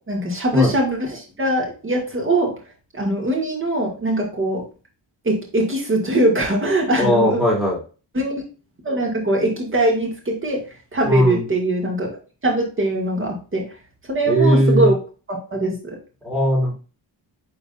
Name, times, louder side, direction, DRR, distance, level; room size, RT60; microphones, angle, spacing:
voice 1, 0.1-2.5 2.9-4.6 5.2-7.4 8.1-8.3 8.8-10.6 10.9-12.1 12.4-13.6 14.1-14.9 15.3-16.0, right 1 dB, 30° right, 0 dB, 2.2 m, -21 dB
voice 2, 7.0-7.8 11.0-11.5 14.3-14.9 16.2-16.7, equal, ahead, -3 dB, 3.0 m, -18 dB
9.5 x 3.9 x 2.5 m, 0.35 s
wide cardioid pair, 160°, 44 cm